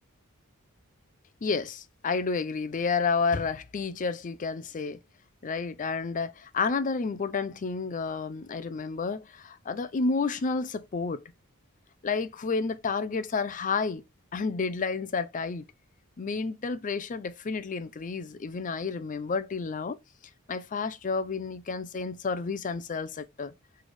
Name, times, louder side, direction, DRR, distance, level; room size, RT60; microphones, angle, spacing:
voice 1, 1.4-5.0 5.4-11.2 12.0-14.0 14.3-15.7 16.2-20.0 20.5-23.5, left 4 dB, 35° left, 0.4 m, -30 dB
4.1 x 3.3 x 3.1 m
head